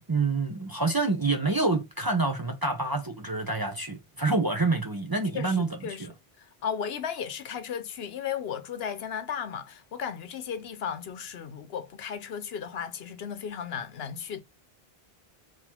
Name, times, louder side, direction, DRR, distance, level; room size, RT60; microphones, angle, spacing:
voice 1, 0.0-6.1, right 3 dB, 25° right, 0.6 m, -27 dB
voice 2, 5.3-6.1 6.4-14.4, left 8 dB, 75° left, 1.0 m, -35 dB
4.0 x 3.1 x 4.3 m
omnidirectional pair, 1.0 m